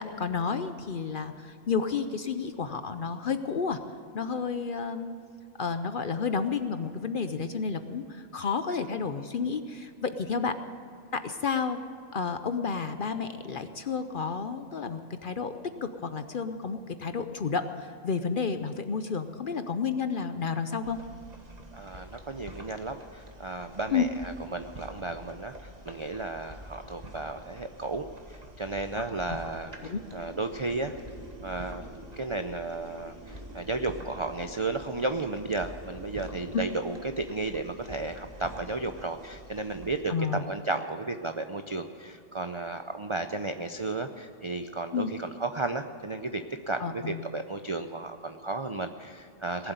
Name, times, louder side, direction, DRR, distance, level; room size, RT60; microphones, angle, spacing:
voice 1, 0.0-3.8 4.1-5.1 5.6-10.5 11.1-11.8 12.1-15.5 15.8-21.0 23.9-24.0 29.3-29.4 29.8-30.0 36.5-36.6 40.1-40.4 44.9-45.1 46.8-47.2, left 5 dB, 55° left, 9 dB, 0.6 m, -31 dB
sound 1, 20.8-40.0, equal, 30° right, 1.5 m, -47 dB
voice 2, 21.7-30.9 31.4-31.8 32.2-49.7, right 3 dB, 55° right, 7 dB, 0.3 m, -34 dB
sound 2, 29.7-36.5, right 2 dB, 80° right, 2.9 m, -49 dB
19.0 x 7.8 x 9.3 m, 2.6 s
omnidirectional pair, 1.4 m